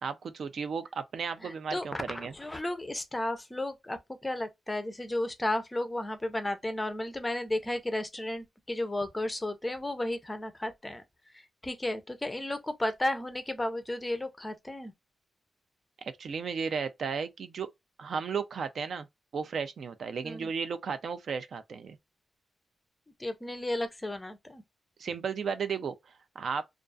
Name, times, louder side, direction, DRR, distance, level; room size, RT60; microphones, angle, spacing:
voice 1, 0.0-2.3 16.0-17.7 18.0-19.1 19.3-22.0 25.0-26.6, right 6 dB, 65° right, 0.3 m, -34 dB
voice 2, 1.4-11.0 11.3-14.9 20.2-20.5 23.2-24.6, left 1 dB, 15° left, 0.4 m, -33 dB
2.3 x 2.3 x 2.3 m
wide cardioid pair, 135°, 0 cm